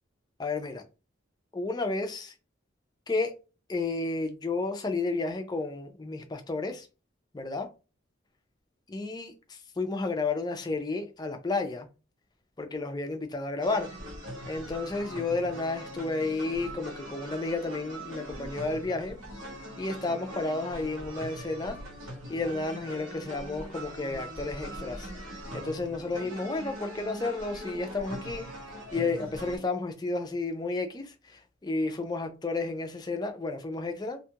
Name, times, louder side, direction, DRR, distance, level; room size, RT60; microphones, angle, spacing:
voice 1, 0.4-0.8 1.5-2.3 3.1-3.3 3.7-6.9 7.3-7.7 8.9-11.9 12.6-13.9 14.4-19.2 19.7-21.8 22.3-25.1 25.5-28.5 28.9-34.2, left 3 dB, 20° left, 0.4 m, -32 dB
sound 1, 13.6-29.6, equal, 80° right, 1.0 m, -41 dB
2.5 x 2.3 x 2.8 m
head